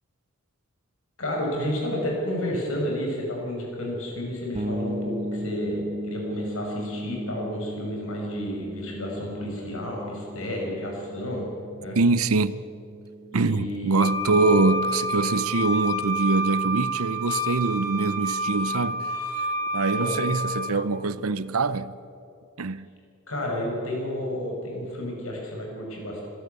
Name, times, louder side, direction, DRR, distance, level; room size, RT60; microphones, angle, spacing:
voice 1, 1.2-11.5 11.8-12.0 13.3-14.5 19.9-20.1 23.3-26.3, equal, 70° left, 6.5 m, -31 dB
sound 1, 4.5-14.1, equal, 30° right, 1.1 m, -36 dB
voice 2, 12.0-12.6 13.3-19.1 19.4-19.5 19.7-22.0 22.6-22.9, right 3 dB, 85° right, 0.8 m, -24 dB
Wind instrument woodwind instrument, 14.0-20.7, right 1 dB, 20° left, 1.9 m, -28 dB
25.5 x 13.5 x 8.3 m
head